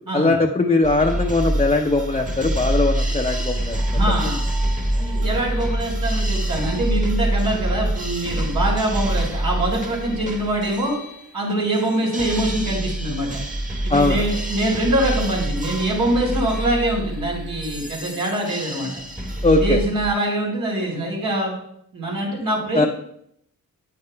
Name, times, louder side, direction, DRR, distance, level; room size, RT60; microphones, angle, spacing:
voice 1, 0.1-3.8 13.9-14.2 19.4-19.8 22.7-22.9, left 2 dB, 20° left, 0 dB, 0.6 m, -19 dB
sound 1, 0.8-20.1, right 1 dB, 20° right, 1.2 m, -26 dB
voice 2, 3.9-4.4 5.0-10.9 11.3-13.4 13.8-19.0 19.4-21.5 21.9-22.9, right 1 dB, 85° right, -3 dB, 3.4 m, -24 dB
9.3 x 8.6 x 2.2 m, 0.73 s
cardioid pair, 60°, 35 cm